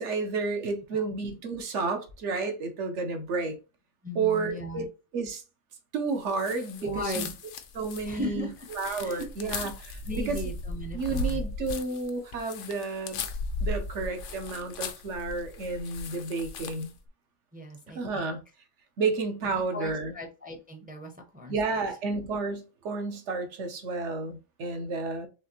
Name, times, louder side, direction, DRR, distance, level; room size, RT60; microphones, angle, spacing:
voice 1, 0.0-3.6 4.1-5.4 5.9-7.3 7.7-8.5 8.8-10.4 10.9-13.2 13.6-16.9 17.9-18.4 19.0-20.1 21.5-25.3, right 4 dB, 65° right, 1.2 m, -31 dB
voice 2, 4.0-4.8 6.8-7.3 8.0-8.5 9.0-9.3 10.1-11.4 17.5-18.3 19.4-21.8, equal, 10° right, 0.5 m, -37 dB
sound 1, 6.3-17.0, left 2 dB, 70° left, 0.9 m, -36 dB
4.8 x 3.3 x 2.9 m
omnidirectional pair, 1.4 m